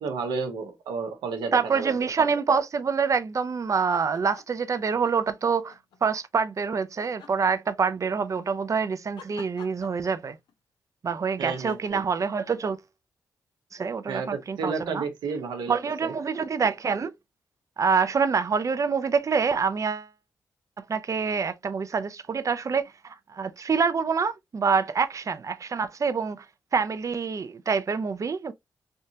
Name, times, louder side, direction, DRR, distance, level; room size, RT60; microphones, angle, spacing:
voice 1, 0.0-1.9 11.4-12.0 14.1-16.1, right 5 dB, 85° right, 0.9 m, -32 dB
voice 2, 1.5-10.4 11.0-12.8 13.7-15.1 15.7-17.1 17.8-20.1 20.8-26.5 26.7-28.5, right 5 dB, 45° right, 0.5 m, -26 dB
sound 1, 3.8-4.6 5.0-6.0 7.0-8.2 9.2-10.5 11.6-11.9, left 6 dB, 80° left, 0.8 m, -48 dB
3.3 x 2.7 x 2.7 m
supercardioid pair, 45°, 7 cm